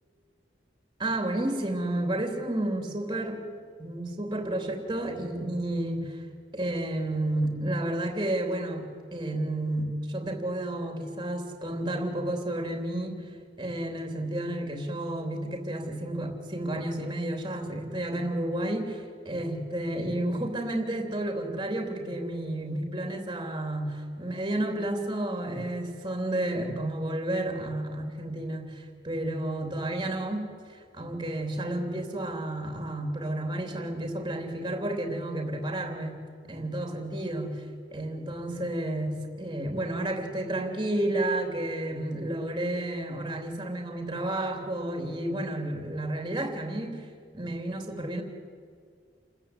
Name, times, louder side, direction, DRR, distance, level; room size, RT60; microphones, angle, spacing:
voice 1, 1.0-3.4 3.8-6.2 6.5-13.3 13.6-36.2 36.5-37.6 37.9-47.0 47.3-48.2, right 1 dB, 25° right, 4 dB, 3.2 m, -31 dB
29.0 x 15.0 x 9.8 m, 2.1 s
head